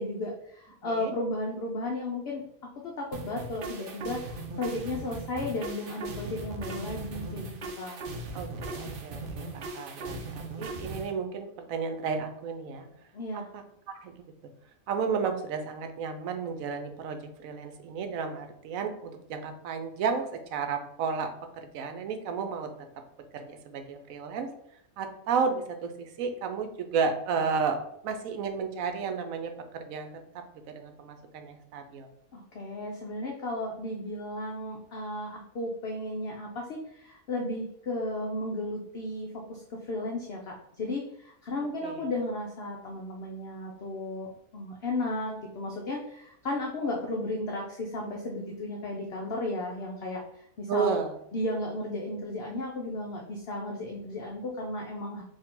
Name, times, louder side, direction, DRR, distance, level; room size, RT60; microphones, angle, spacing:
voice 1, 0.0-2.4 2.8-8.0 13.1-13.5 32.3-51.0 51.3-55.2, left 2 dB, 55° left, 0 dB, 0.8 m, -34 dB
sound 1, 3.1-11.1, right 2 dB, 50° right, 0.7 m, -38 dB
voice 2, 8.3-12.9 13.3-13.6 13.9-14.1 14.9-22.7 23.3-24.5 25.0-27.8 28.0-30.1 30.7-32.1 41.8-42.1 50.7-51.1, right 5 dB, 80° right, 6 dB, 1.0 m, -32 dB
4.6 x 2.8 x 3.7 m, 0.72 s
omnidirectional pair, 1.5 m